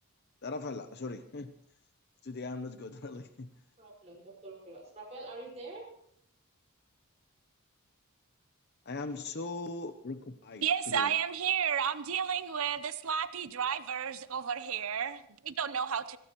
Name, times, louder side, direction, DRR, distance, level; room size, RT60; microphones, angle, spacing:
voice 1, 0.4-1.5 2.2-3.5 8.9-11.1, left 3 dB, 45° left, 9 dB, 0.7 m, -39 dB
voice 2, 3.8-5.8, right 2 dB, 30° right, -4 dB, 5.1 m, -46 dB
voice 3, 10.6-16.2, right 8 dB, 65° right, 13 dB, 0.7 m, -32 dB
22.0 x 16.5 x 3.1 m, 0.70 s
head